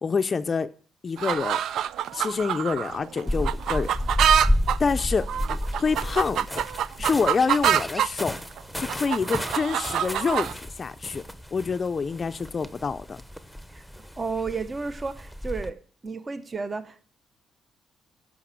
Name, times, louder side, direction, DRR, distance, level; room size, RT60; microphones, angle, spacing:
voice 1, 0.0-0.7 1.0-1.6 2.1-3.9 4.8-6.6 7.0-8.3 8.8-11.2 11.5-13.2, left 5 dB, 40° left, 0.5 m, -27 dB
sound 1, 1.2-8.1 8.6-10.5, right 10 dB, 75° right, 0.4 m, -26 dB
sound 2, 3.3-15.7, equal, 5° right, 0.9 m, -32 dB
voice 2, 14.2-15.8 16.0-17.0, right 4 dB, 30° right, 0.8 m, -32 dB
10.0 x 5.8 x 7.5 m
cardioid pair, 90°, 0 cm